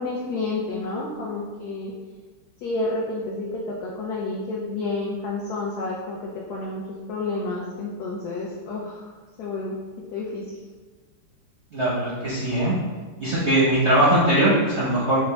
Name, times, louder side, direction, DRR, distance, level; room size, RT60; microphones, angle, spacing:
voice 1, 0.0-1.9 2.6-6.8 7.1-9.0 9.4-9.8 10.1-10.4, left 2 dB, 75° left, -3 dB, 0.9 m, -30 dB
voice 2, 11.7-12.8 13.2-15.2, right 1 dB, 60° right, -8 dB, 0.7 m, -20 dB
4.8 x 2.1 x 3.3 m, 1.4 s
omnidirectional pair, 2.2 m